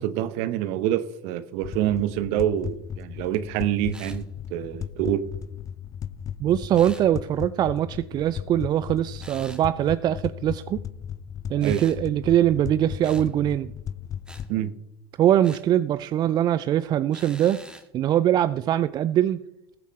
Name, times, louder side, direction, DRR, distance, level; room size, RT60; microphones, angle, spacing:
voice 1, 0.0-4.2 4.5-5.3 11.6-11.8 14.5-14.7, right 12 dB, 55° right, 0.9 m, -26 dB
sound 1, 1.6-14.6, left 8 dB, 30° left, 0.4 m, -36 dB
sound 2, 3.9-4.2 6.7-7.1 9.2-9.6 11.6-12.0 13.0-13.3 14.3-14.5 15.4-15.7 17.1-17.9, right 1 dB, 5° right, 1.6 m, -45 dB
voice 2, 6.4-10.8 11.5-13.7 15.2-17.6 17.9-19.4, right 11 dB, 35° right, 0.5 m, -22 dB
20.5 x 8.3 x 3.2 m
figure-of-eight pair, 80°, 12 cm